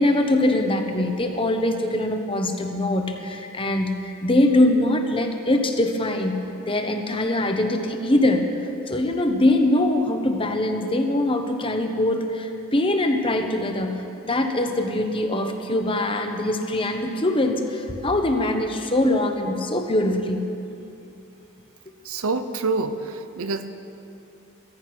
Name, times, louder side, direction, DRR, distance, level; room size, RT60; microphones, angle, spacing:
voice 1, 0.0-8.4 8.9-14.0 14.3-20.5, left 1 dB, 25° left, 5 dB, 1.0 m, -22 dB
voice 2, 22.0-23.7, right 3 dB, 75° right, 10 dB, 0.8 m, -27 dB
16.0 x 14.5 x 6.1 m, 2.8 s
head